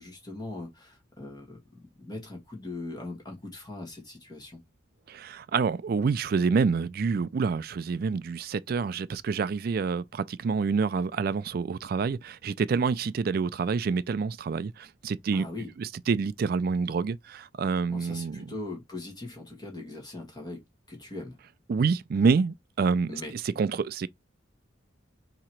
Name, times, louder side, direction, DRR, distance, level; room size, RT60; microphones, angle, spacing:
voice 1, 0.0-4.6 15.3-15.7 17.9-20.6 20.9-21.4 23.1-23.3, left 2 dB, 20° left, 1.4 m, -40 dB
voice 2, 5.1-15.5 15.8-18.5 21.7-23.2 23.6-24.1, right 5 dB, 50° right, 0.3 m, -27 dB
3.7 x 2.9 x 4.4 m
head